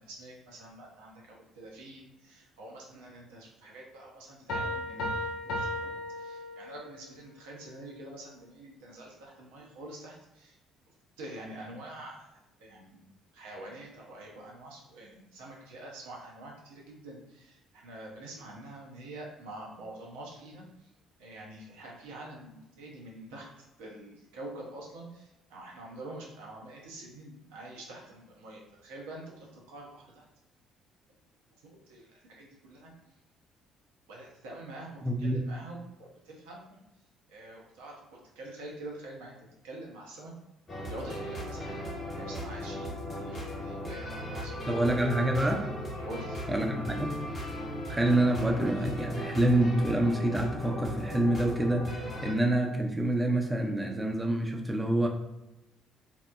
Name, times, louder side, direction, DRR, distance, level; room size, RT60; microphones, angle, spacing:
voice 1, 0.0-10.6 11.2-12.3 12.6-13.0 13.3-20.9 21.2-30.3 31.6-32.9 34.1-36.8 37.3-39.4 39.6-40.3 40.9-44.9 46.0-46.4, right 1 dB, 75° right, -2 dB, 0.6 m, -46 dB
Piano, 4.5-7.0, left 1 dB, 65° left, 0.4 m, -35 dB
voice 2, 35.0-35.4 44.7-45.6 46.5-47.1 47.9-55.1, right 1 dB, 15° right, 2 dB, 0.5 m, -27 dB
sound 1, 40.7-52.3, equal, 35° left, 0.8 m, -37 dB
2.8 x 2.0 x 2.3 m, 0.95 s
figure-of-eight pair, 50°, 0 cm